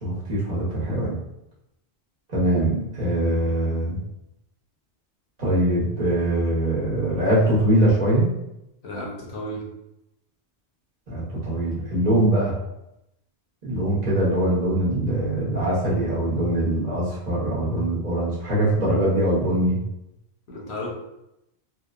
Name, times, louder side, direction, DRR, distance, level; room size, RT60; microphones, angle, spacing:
voice 1, 0.0-1.2 2.3-4.0 5.4-8.3 11.1-12.5 13.6-19.8, right 1 dB, 45° right, -7 dB, 0.8 m, -22 dB
voice 2, 8.8-9.7 20.5-20.9, equal, 75° left, -3 dB, 1.0 m, -33 dB
2.9 x 2.0 x 2.3 m, 0.87 s
omnidirectional pair, 1.1 m